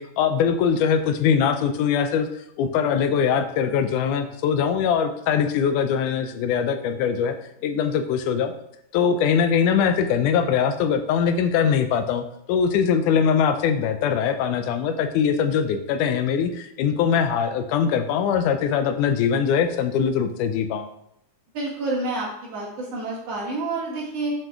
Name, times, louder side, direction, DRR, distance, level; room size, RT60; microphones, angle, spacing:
voice 1, 0.0-2.3 2.6-7.4 7.6-8.5 8.9-20.9, left 7 dB, 80° left, 8 dB, 2.0 m, -22 dB
voice 2, 21.5-24.3, right 2 dB, 50° right, -5 dB, 3.0 m, -28 dB
7.4 x 5.3 x 3.6 m, 0.76 s
omnidirectional pair, 3.8 m